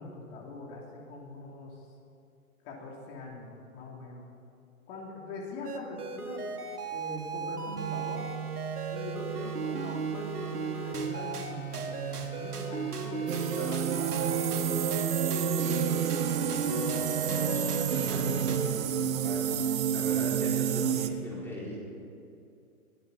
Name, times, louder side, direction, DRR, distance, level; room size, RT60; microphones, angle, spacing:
voice 1, 0.0-1.9 2.6-4.2 4.9-8.4 8.9-14.9, left 2 dB, 40° left, -2 dB, 2.9 m, -42 dB
sound 1, 5.6-18.6, right 5 dB, 85° right, 1.8 m, -35 dB
sound 2, 13.3-21.1, right 8 dB, 60° right, 1.0 m, -29 dB
voice 2, 16.5-21.8, equal, 5° left, -7 dB, 4.3 m, -42 dB
21.5 x 13.0 x 4.1 m, 2.5 s
hypercardioid pair, 135°, 44 cm